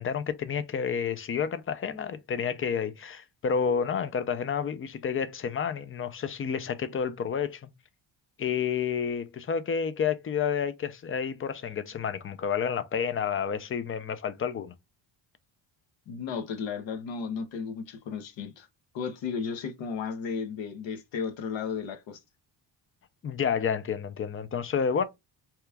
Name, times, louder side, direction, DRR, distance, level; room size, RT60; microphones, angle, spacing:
voice 1, 0.0-7.7 8.4-14.7 23.2-25.0, left 7 dB, 30° left, 0.4 m, -30 dB
voice 2, 16.1-18.7 18.9-22.2, left 6 dB, 70° left, 0.8 m, -34 dB
2.9 x 2.3 x 3.3 m
cardioid pair, 100°, 48 cm